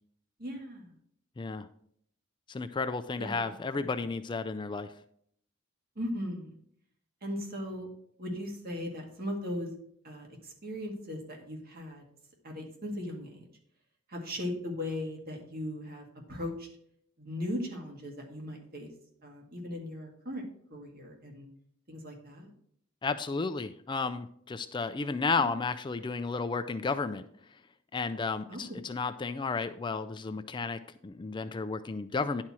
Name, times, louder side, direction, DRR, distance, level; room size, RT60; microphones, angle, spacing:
voice 1, 0.4-0.9 3.2-3.4 3.8-3.9 6.0-6.6 7.2-7.9 8.2-9.7 10.0-12.0 12.4-13.4 14.1-16.7 17.2-18.9 19.2-20.4 20.7-21.5 21.9-22.5 25.4-25.5 28.5-28.6, left 1 dB, 45° right, 1 dB, 2.0 m, -38 dB
voice 2, 1.4-1.7 2.5-4.9 23.0-27.3 27.9-32.4, left 4 dB, 20° left, 10 dB, 0.3 m, -33 dB
10.5 x 4.3 x 6.1 m, 0.68 s
head